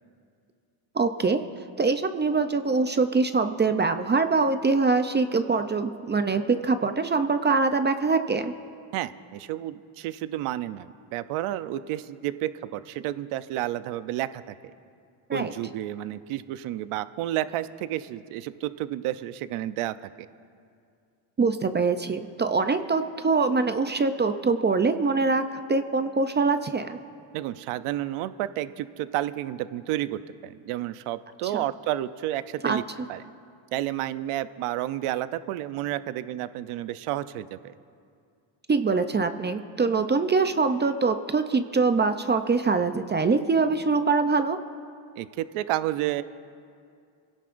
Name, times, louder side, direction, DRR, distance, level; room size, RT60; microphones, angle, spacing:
voice 1, 0.9-1.4 1.8-8.5 15.3-15.5 21.4-25.4 25.7-27.0 32.6-32.8 38.7-44.6, right 4 dB, 20° right, 8 dB, 0.5 m, -24 dB
voice 2, 8.9-14.4 15.3-19.9 27.3-32.8 33.1-33.2 33.7-37.7 45.2-46.2, right 14 dB, 85° right, 13 dB, 0.7 m, -31 dB
28.0 x 17.0 x 2.6 m, 2.4 s
cardioid pair, 125°, 50 cm